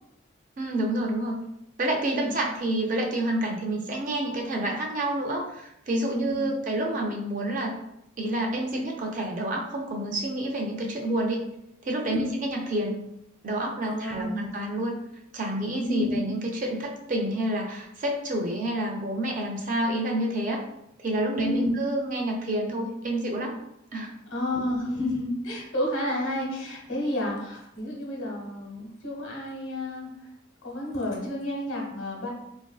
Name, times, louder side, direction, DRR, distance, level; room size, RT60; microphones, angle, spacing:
voice 1, 0.6-1.4 1.8-7.8 8.2-11.4 11.8-13.1 13.4-15.0 15.3-20.6 21.0-23.6 23.9-24.2, right 1 dB, 40° right, 1 dB, 0.3 m, -28 dB
voice 2, 6.1-6.5 12.1-12.3 13.8-14.4 15.7-16.2 21.3-21.7 24.3-30.1 30.6-32.3, left 1 dB, 80° left, -2 dB, 1.0 m, -31 dB
3.0 x 2.5 x 2.3 m, 0.80 s
head